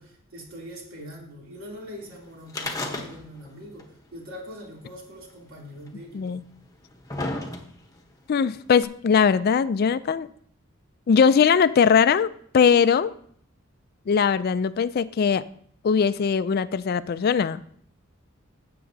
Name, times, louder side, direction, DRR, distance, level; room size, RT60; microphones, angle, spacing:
voice 1, 0.0-6.3, equal, 70° right, -2 dB, 2.9 m, -42 dB
sound 1, 2.5-3.5 3.8-3.9 4.9-5.0 5.9-6.0 6.6-8.0 8.8-8.9, left 2 dB, 15° left, 1.0 m, -32 dB
voice 2, 8.3-10.3 11.1-12.3 12.5-13.1 14.1-15.4 15.8-17.6, left 6 dB, 45° left, 15 dB, 0.3 m, -20 dB
16.0 x 7.6 x 2.7 m, 0.62 s
head